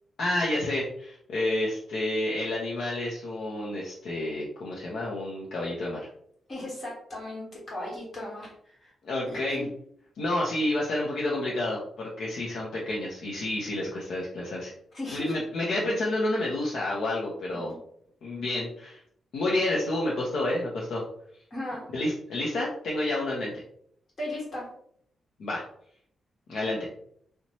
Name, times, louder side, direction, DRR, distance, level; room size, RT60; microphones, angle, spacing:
voice 1, 0.2-6.0 9.0-9.6 10.2-14.7 15.1-17.7 18.2-19.0 19.3-21.0 21.9-23.6 25.4-25.6 26.5-26.9, left 1 dB, 65° left, -4 dB, 0.6 m, -29 dB
voice 2, 6.5-8.9 9.3-9.6 14.9-15.3 17.7-17.8 21.5-21.8 24.2-24.7, left 1 dB, 35° left, -4 dB, 1.3 m, -36 dB
2.7 x 2.1 x 2.9 m, 0.66 s
wide cardioid pair, 150°, 0 cm